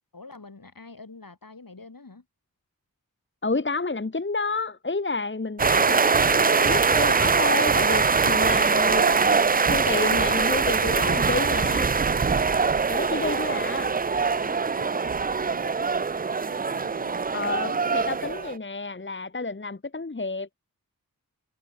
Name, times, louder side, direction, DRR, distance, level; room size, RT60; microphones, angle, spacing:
voice 1, 0.1-2.3 13.1-13.4 13.8-17.4, left 3 dB, 75° left, 4.6 m, -47 dB
voice 2, 3.4-11.9 12.9-13.9 17.3-20.6, left 3 dB, 35° left, 1.1 m, -30 dB
sound 1, 5.6-18.5, right 5 dB, 25° right, 0.4 m, -23 dB
wide cardioid pair, 45°, 34 cm